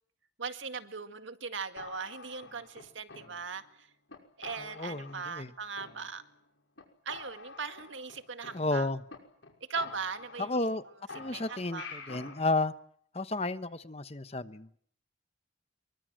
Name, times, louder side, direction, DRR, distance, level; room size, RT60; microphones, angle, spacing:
voice 1, 0.4-3.9 4.4-6.2 7.1-8.9 9.7-10.7 11.3-11.9, right 5 dB, 70° right, 8 dB, 2.0 m, -39 dB
sound 1, 1.8-3.7 4.1-4.2 4.4-5.5 5.8-6.5 6.8-6.9 7.1-9.1 9.4-9.5 9.8-10.8 11.1-12.4, left 4 dB, 65° left, 5.8 m, -48 dB
voice 2, 4.6-5.5 8.5-9.0 10.4-10.8 11.1-12.7 13.1-14.8, left 2 dB, 30° left, 12 dB, 1.1 m, -32 dB
28.0 x 23.5 x 7.7 m, 0.62 s
head